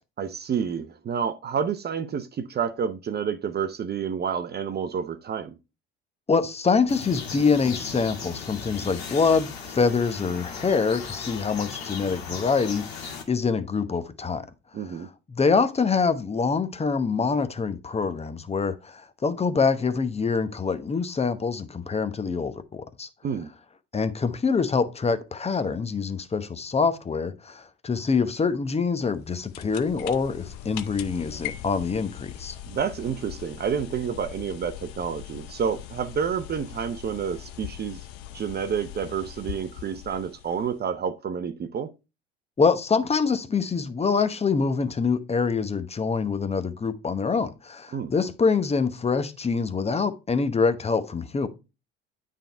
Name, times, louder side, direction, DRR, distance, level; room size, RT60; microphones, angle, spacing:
voice 1, 0.2-5.5 14.7-15.1 23.2-23.5 32.7-38.0 38.3-41.9 47.9-48.1, right 7 dB, 30° right, 0.7 m, -29 dB
voice 2, 6.3-14.5 15.3-23.1 23.9-32.5 42.6-51.5, left 5 dB, 20° left, 0.9 m, -25 dB
sound 1, 6.9-13.2, left 6 dB, 85° left, 1.7 m, -37 dB
sound 2, 29.1-40.9, left 12 dB, 65° left, 0.7 m, -41 dB
9.0 x 3.7 x 4.4 m
hypercardioid pair, 70°, 31 cm